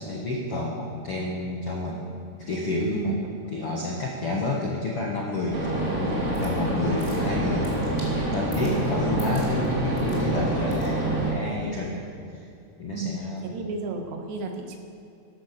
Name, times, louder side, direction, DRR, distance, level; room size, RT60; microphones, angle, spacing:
voice 1, 0.0-2.1 2.5-3.2 3.5-5.7 6.0-7.7 8.1-12.4 12.8-13.6, left 2 dB, 70° left, -2 dB, 1.3 m, -30 dB
voice 2, 3.5-3.8 8.6-8.8 12.9-13.1 13.4-14.8, right 4 dB, 85° right, 4 dB, 3.6 m, -32 dB
sound 1, 5.5-11.3, right 2 dB, 20° right, 2.1 m, -27 dB
sound 2, 5.9-11.3, left 1 dB, 10° left, 3.1 m, -43 dB
14.0 x 11.5 x 6.8 m, 2.5 s
omnidirectional pair, 4.8 m